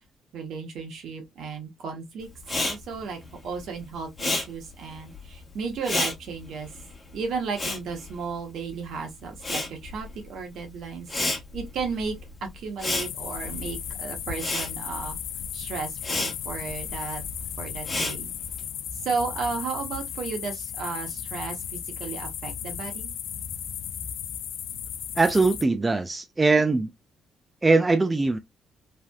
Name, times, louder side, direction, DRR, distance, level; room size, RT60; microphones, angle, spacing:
voice 1, 0.3-2.3 2.6-6.7 7.1-12.1 12.4-15.2 15.5-17.2 17.6-18.3 19.0-23.1, right 5 dB, 75° right, 1.3 m, -34 dB
Respiratory sounds, 2.4-8.9 9.1-18.6, left 2 dB, 25° left, 1.3 m, -32 dB
sound 1, 12.9-25.6, left 9 dB, 80° left, 0.4 m, -35 dB
voice 2, 25.2-26.9 27.6-28.4, right 3 dB, 20° right, 0.4 m, -21 dB
3.3 x 2.6 x 2.3 m
cardioid pair, 90°, 0 cm